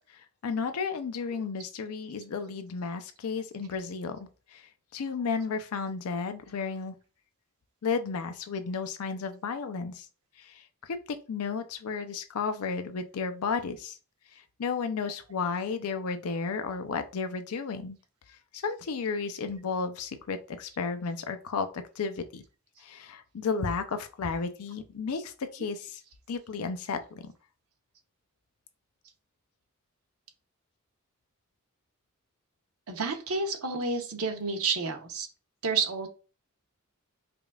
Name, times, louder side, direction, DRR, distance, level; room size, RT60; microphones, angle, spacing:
voice 1, 0.4-4.3 4.9-7.0 7.8-10.0 10.9-13.9 14.6-18.0 18.6-22.4 22.8-26.0 26.3-27.3, left 5 dB, 80° left, 8 dB, 0.5 m, -33 dB
voice 2, 32.9-35.3 35.6-36.1, right 4 dB, 75° right, 5 dB, 0.8 m, -30 dB
5.0 x 2.4 x 2.3 m, 0.34 s
head